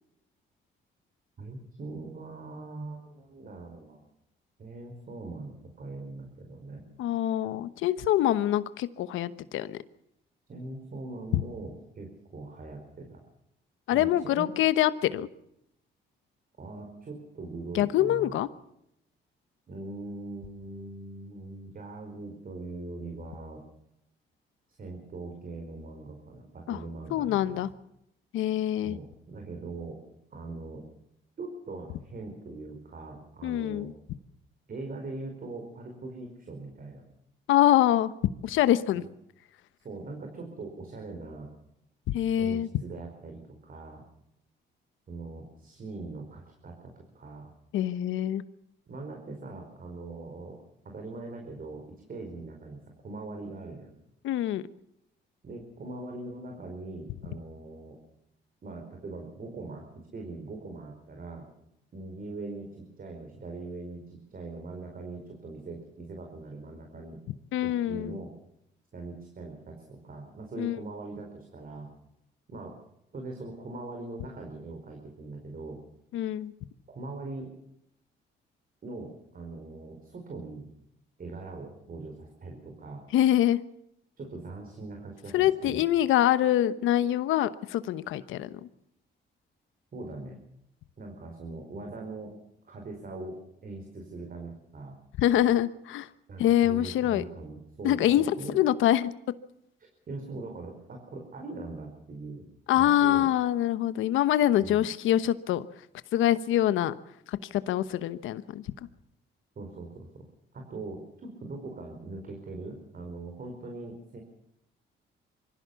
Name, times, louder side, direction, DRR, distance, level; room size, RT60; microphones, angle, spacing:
voice 1, 1.4-4.0 4.6-6.8 10.5-13.2 13.9-14.5 16.6-18.3 19.7-23.6 24.8-27.7 28.8-30.0 30.3-30.8 31.4-33.9 34.7-37.0 38.9-39.0 39.8-41.5 42.4-44.0 45.1-47.5 48.9-50.6 50.8-54.0 55.4-58.0 58.6-61.5 61.9-67.2 67.6-68.3 68.9-71.9 72.5-72.8 73.1-75.8 76.9-77.5 78.8-80.7 81.2-83.0 84.2-85.8 89.9-90.4 91.0-92.3 92.7-94.9 96.3-98.6 100.1-102.5 102.7-103.2 104.6-104.9 109.5-110.2 110.5-114.2, right 3 dB, 45° right, 2 dB, 4.9 m, -41 dB
voice 2, 7.0-9.8 11.3-11.4 13.9-15.3 17.7-18.5 26.7-26.8 27.1-27.7 28.3-29.0 33.4-33.9 37.5-38.1 38.4-39.0 42.1-42.7 47.7-48.4 54.2-54.6 67.5-68.2 70.6-70.8 76.1-76.5 83.1-83.6 85.3-88.7 95.2-96.1 96.4-97.2 97.8-99.1 102.7-105.6 106.1-106.9 107.3-108.6, left 12 dB, 85° left, 14 dB, 1.1 m, -25 dB
24.5 x 15.5 x 7.1 m, 0.77 s
cardioid pair, 90°, 20 cm